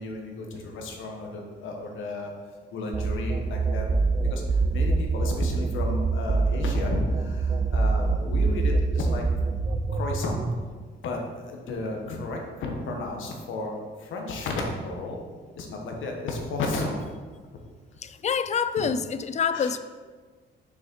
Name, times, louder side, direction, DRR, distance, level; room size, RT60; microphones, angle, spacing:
voice 1, 0.0-2.3 2.7-3.9 4.3-4.4 4.7-9.2 9.9-10.4 11.0-15.2 15.5-17.0 19.5-19.8, left 2 dB, 80° left, 1 dB, 1.5 m, -33 dB
sound 1, 2.9-10.6, right 3 dB, 25° right, 0.7 m, -25 dB
voice 2, 18.0-19.8, left 6 dB, 35° left, 13 dB, 0.4 m, -26 dB
6.6 x 6.2 x 4.7 m, 1.5 s
cardioid pair, 90°, 20 cm